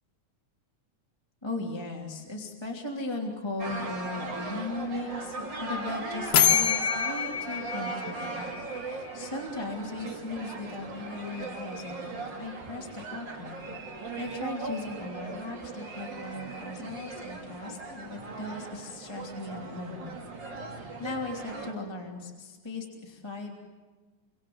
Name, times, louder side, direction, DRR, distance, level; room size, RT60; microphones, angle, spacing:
voice 1, 1.4-13.6 13.9-20.1 20.7-23.5, left 2 dB, 10° left, -1 dB, 2.7 m, -38 dB
sound 1, 3.6-21.7, right 3 dB, 40° right, 2.9 m, -38 dB
sound 2, 6.3-9.1, left 9 dB, 70° left, 2.7 m, -26 dB
27.0 x 25.0 x 7.9 m, 1.3 s
omnidirectional pair, 3.4 m